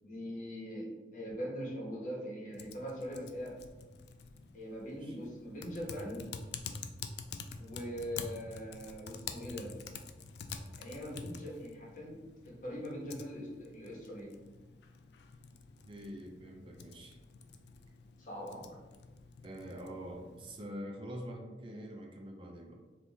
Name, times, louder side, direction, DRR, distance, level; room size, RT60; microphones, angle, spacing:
voice 1, 0.0-3.6 4.5-6.3 7.6-9.7 10.8-14.3 18.2-18.8, equal, 45° left, -3 dB, 1.2 m, -42 dB
Typing, 2.5-20.6, left 5 dB, 70° left, 0.4 m, -48 dB
voice 2, 15.9-17.2 19.4-22.8, equal, 30° right, 1 dB, 0.4 m, -45 dB
4.4 x 2.6 x 3.5 m, 1.2 s
head